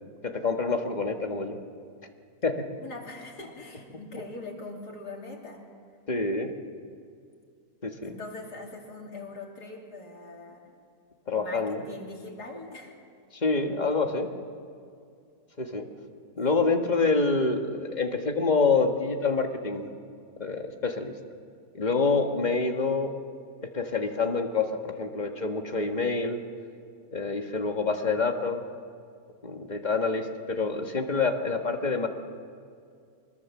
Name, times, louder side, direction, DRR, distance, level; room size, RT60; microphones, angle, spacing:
voice 1, 0.2-1.6 2.4-2.7 6.1-6.5 7.8-8.2 11.3-11.8 13.4-14.3 15.6-15.8 16.3-19.9 20.4-21.1 21.7-23.1 23.6-26.4 27.1-28.6 29.4-32.1, left 4 dB, 30° left, 4 dB, 1.6 m, -27 dB
voice 2, 2.8-5.6 8.0-10.6 11.4-13.0, left 2 dB, 85° left, 0 dB, 3.5 m, -42 dB
24.5 x 20.5 x 7.3 m, 2.3 s
omnidirectional pair, 1.7 m